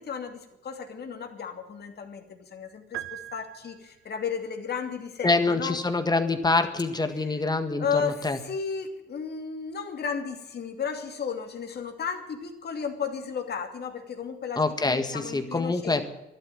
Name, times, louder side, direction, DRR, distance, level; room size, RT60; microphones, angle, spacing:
voice 1, 0.0-5.8 7.2-7.4 7.8-16.1, left 6 dB, 55° left, 4 dB, 2.7 m, -34 dB
sound 1, 2.9-4.3, right 13 dB, 85° right, 0.8 m, -40 dB
voice 2, 5.2-8.4 14.6-16.0, left 3 dB, 20° left, 8 dB, 1.8 m, -25 dB
12.5 x 12.0 x 9.6 m, 0.95 s
cardioid pair, 90°, 20 cm